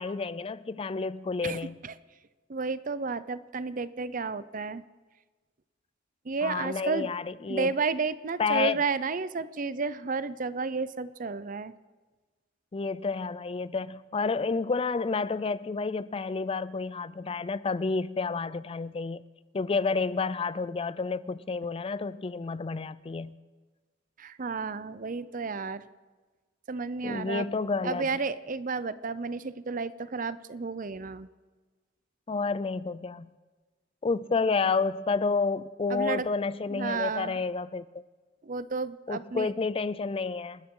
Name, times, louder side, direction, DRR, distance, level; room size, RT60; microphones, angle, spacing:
voice 1, 0.0-1.8 6.4-7.7 8.4-8.8 12.7-19.2 19.5-23.4 27.0-28.1 32.3-33.3 34.0-37.8 39.1-40.6, left 4 dB, 30° left, 17 dB, 0.4 m, -30 dB
voice 2, 1.4-1.9 2.5-4.8 6.2-7.1 7.5-11.7 24.2-25.9 26.7-27.5 27.8-31.3 35.9-36.3 36.7-37.4 38.4-39.5, right 4 dB, 45° right, 15 dB, 0.6 m, -32 dB
28.5 x 13.0 x 3.8 m, 1.3 s
head